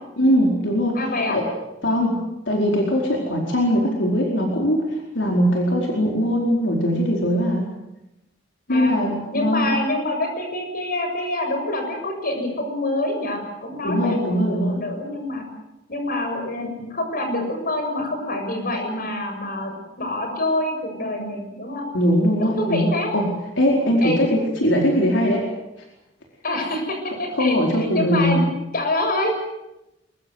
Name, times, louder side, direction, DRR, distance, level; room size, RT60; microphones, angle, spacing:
voice 1, 0.2-1.0 1.3-1.4 1.8-2.2 2.5-7.7 8.7-9.7 13.8-14.8 21.9-23.3 23.6-25.5 27.4-28.4, equal, 75° left, 0 dB, 4.7 m, -20 dB
voice 2, 0.9-1.4 8.7-9.0 9.3-15.5 15.9-21.8 22.4-23.1 24.0-24.2 26.4-29.3, left 1 dB, 50° left, 5 dB, 6.9 m, -26 dB
24.0 x 23.0 x 8.1 m, 0.93 s
head